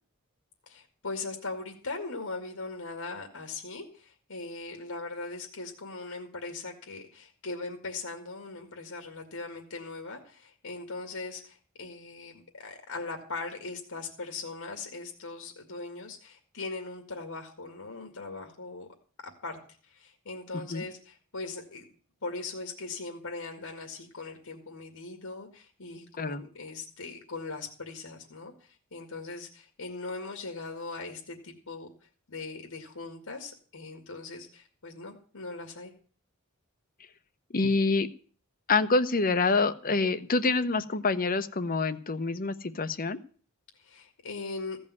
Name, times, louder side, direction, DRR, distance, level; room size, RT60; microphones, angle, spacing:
voice 1, 0.7-18.9 19.2-19.6 19.8-21.8 22.2-31.9 32.3-35.9 43.7-44.8, left 3 dB, 80° left, 3 dB, 2.2 m, -40 dB
voice 2, 37.5-38.1 38.7-43.2, left 3 dB, 40° left, 12 dB, 0.9 m, -26 dB
15.5 x 5.5 x 9.5 m, 0.44 s
head